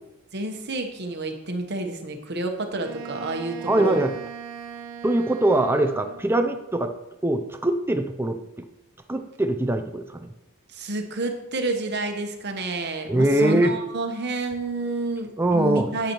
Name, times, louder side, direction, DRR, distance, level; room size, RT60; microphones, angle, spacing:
voice 1, 0.3-4.0 10.7-16.1, right 2 dB, 50° right, 5 dB, 1.0 m, -29 dB
Wind instrument woodwind instrument, 2.8-6.3, right 7 dB, 70° right, 0.9 m, -39 dB
voice 2, 3.6-4.2 5.0-6.9 7.2-8.4 9.1-10.3 13.1-13.8 15.4-15.9, right 1 dB, 10° right, 7 dB, 0.5 m, -22 dB
8.7 x 8.2 x 3.0 m, 0.88 s
head